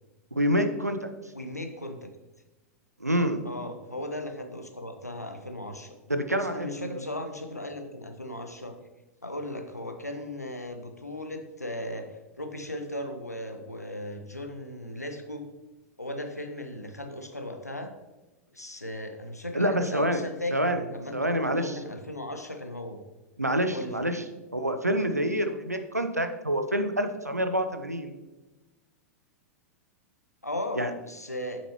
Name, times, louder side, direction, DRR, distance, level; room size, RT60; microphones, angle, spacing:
voice 1, 0.4-1.1 3.0-3.4 6.1-7.0 19.5-20.2 20.5-20.8 21.1-21.8 23.4-24.2 24.5-28.1 30.8-30.9, equal, 90° right, 8 dB, 0.7 m, -27 dB
voice 2, 1.3-2.1 3.4-5.9 6.4-8.7 9.2-12.1 12.4-15.4 16.0-17.9 18.5-23.0 23.7-23.9 30.4-31.6, left 1 dB, 85° left, 5 dB, 1.0 m, -37 dB
8.8 x 7.1 x 3.0 m, 1.1 s
figure-of-eight pair, 95°, 8 cm